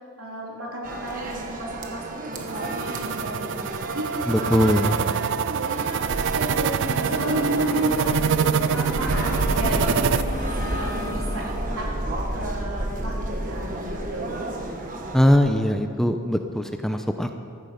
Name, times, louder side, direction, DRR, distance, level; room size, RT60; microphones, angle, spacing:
voice 1, 0.2-6.7 7.0-11.9 12.3-14.6, right 1 dB, 80° right, -3 dB, 3.5 m, -32 dB
sound 1, 0.8-15.4, right 1 dB, 35° right, 1.4 m, -31 dB
sound 2, 2.3-10.2, right 7 dB, 55° right, 0.3 m, -26 dB
voice 2, 4.3-4.9 15.1-17.3, equal, ahead, 5 dB, 0.5 m, -21 dB
sound 3, 6.8-11.6, left 1 dB, 70° left, 1.7 m, -34 dB
15.0 x 13.5 x 5.2 m, 2.3 s
head